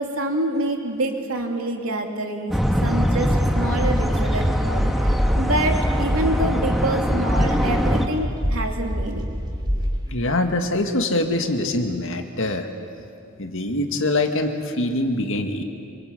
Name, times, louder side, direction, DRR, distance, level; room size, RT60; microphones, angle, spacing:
voice 1, 0.0-9.3, right 1 dB, 75° right, 3 dB, 2.9 m, -26 dB
sound 1, 2.5-8.1, equal, ahead, 1.6 m, -22 dB
sound 2, 3.4-10.1, equal, 20° right, 2.7 m, -27 dB
voice 2, 10.1-12.7 13.4-15.6, left 2 dB, 65° left, 5 dB, 2.1 m, -24 dB
26.5 x 23.5 x 8.4 m, 2.7 s
head